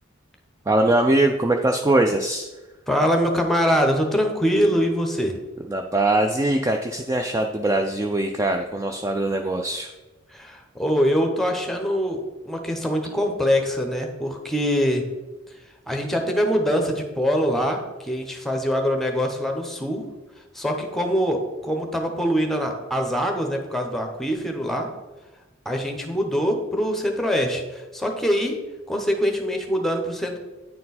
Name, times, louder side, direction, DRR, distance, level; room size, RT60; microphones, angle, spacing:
voice 1, 0.7-2.5 5.7-9.9, right 2 dB, 15° right, 4 dB, 0.3 m, -22 dB
voice 2, 2.9-5.4 10.3-15.1 15.9-20.0 20.5-24.9 25.6-28.6 28.9-30.4, equal, ahead, 3 dB, 0.8 m, -23 dB
9.3 x 4.5 x 4.1 m, 1.1 s
head